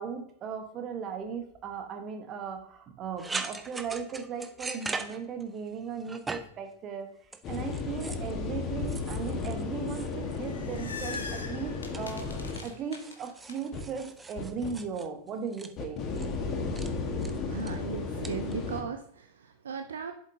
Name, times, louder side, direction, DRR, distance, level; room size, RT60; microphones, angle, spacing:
voice 1, 0.0-7.1 7.5-16.0, right 6 dB, 30° right, 5 dB, 1.3 m, -37 dB
sound 1, 3.2-5.7 6.0-6.6 7.3-8.3 8.9-10.5 10.8-11.6 11.9-15.7 16.1-16.4 16.8-16.9 17.2-17.7 18.2-18.5, right 3 dB, 10° right, 0.6 m, -41 dB
sound 2, 7.4-12.6 13.7-13.8 14.4-14.7 15.8-18.8, left 4 dB, 30° left, 1.4 m, -34 dB
sound 3, 10.2-13.5, left 4 dB, 70° left, 1.0 m, -42 dB
voice 2, 17.5-20.1, right 6 dB, 65° right, 7 dB, 0.6 m, -37 dB
8.0 x 7.2 x 2.7 m, 0.63 s
figure-of-eight pair, 90°, 0 cm